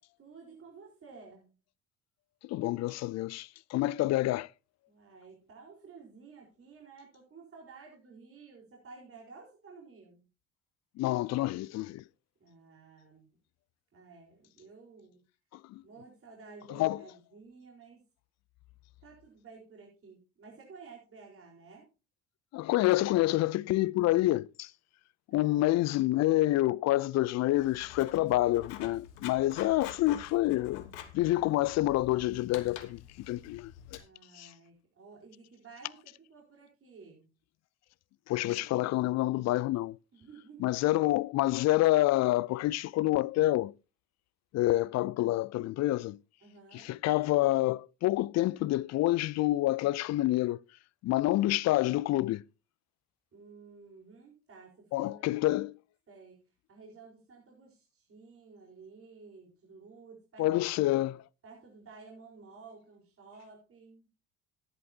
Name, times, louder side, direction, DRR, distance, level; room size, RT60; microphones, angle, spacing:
voice 1, 0.2-1.6 4.9-10.2 12.4-13.3 13.9-15.2 15.8-18.0 19.0-21.9 25.3-25.6 34.0-37.3 40.1-40.8 46.4-46.9 53.3-55.3 56.1-56.4 56.7-60.5 61.4-64.1, right 4 dB, 40° right, 4.5 m, -53 dB
voice 2, 2.4-4.5 11.0-12.0 15.7-15.8 16.7-17.0 22.5-24.7 25.3-30.9 31.1-33.0 33.3-33.7 34.4-34.5 38.3-40.0 40.6-43.7 44.5-46.2 46.7-50.6 51.0-52.4 54.9-55.8 60.4-61.2, left 16 dB, 50° left, 0.5 m, -27 dB
Writing, 27.5-34.0, left 10 dB, 75° left, 1.3 m, -47 dB
13.5 x 11.0 x 2.8 m
hypercardioid pair, 60°, 34 cm